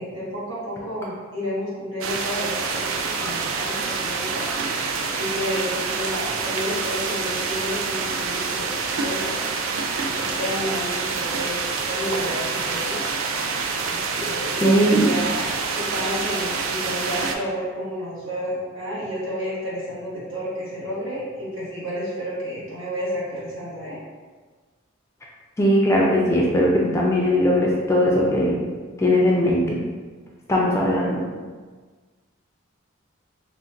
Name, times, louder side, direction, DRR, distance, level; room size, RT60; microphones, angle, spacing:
voice 1, 0.0-4.5 5.2-9.4 10.0-13.0 13.9-15.5 15.7-24.0, equal, 65° right, -9 dB, 1.3 m, -31 dB
sound 1, 2.0-17.4, right 4 dB, 80° right, 0.3 m, -27 dB
voice 2, 14.6-15.1 25.6-28.6 29.0-29.8 30.5-31.2, equal, 15° left, -3 dB, 0.3 m, -19 dB
4.0 x 2.1 x 2.5 m, 1.4 s
head